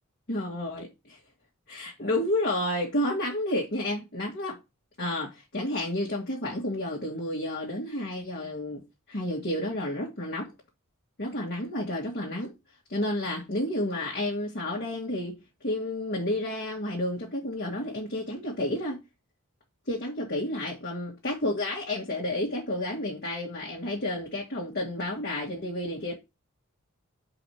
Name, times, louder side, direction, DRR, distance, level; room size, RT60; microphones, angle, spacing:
voice 1, 0.3-1.2 1.7-4.6 5.0-8.8 9.1-10.5 11.2-12.5 12.9-15.4 15.6-19.0 19.9-26.1, left 1 dB, 50° left, 2.2 m, -31 dB
5.1 x 4.9 x 6.4 m
head